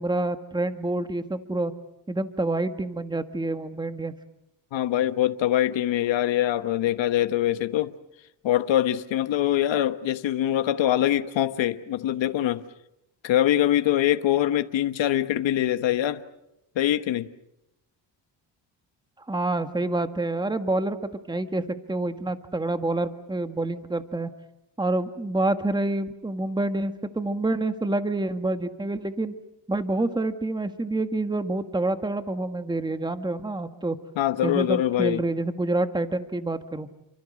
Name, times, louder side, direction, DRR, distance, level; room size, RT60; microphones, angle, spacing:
voice 1, 0.0-1.7 2.1-4.1 19.2-24.3 24.8-29.3 29.7-34.0 34.4-36.9, right 2 dB, 10° right, 1.7 m, -27 dB
voice 2, 4.7-7.9 8.4-12.6 13.2-16.2 16.7-17.3 34.2-35.2, left 12 dB, 85° left, 1.3 m, -23 dB
29.5 x 25.0 x 6.5 m
cardioid pair, 110°, 44 cm